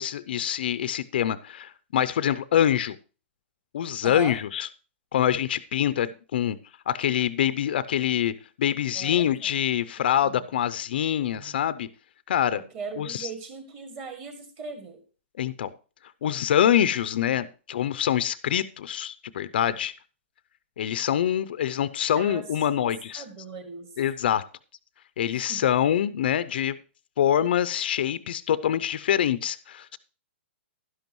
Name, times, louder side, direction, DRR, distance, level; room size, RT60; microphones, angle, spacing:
voice 1, 0.0-3.0 3.7-4.7 5.1-6.6 6.9-11.9 12.3-12.6 13.0-13.3 15.4-15.7 16.2-19.9 20.8-23.2 24.0-24.5 25.2-26.8 27.2-30.0, left 10 dB, 50° left, 15 dB, 0.5 m, -25 dB
voice 2, 4.0-4.4 9.0-9.6 11.3-11.4 12.5-15.0 22.2-22.4 22.8-22.9 23.2-23.9 25.5-25.6, right 5 dB, 25° right, 6 dB, 1.9 m, -39 dB
11.5 x 10.5 x 3.1 m, 0.35 s
hypercardioid pair, 165°, 7 cm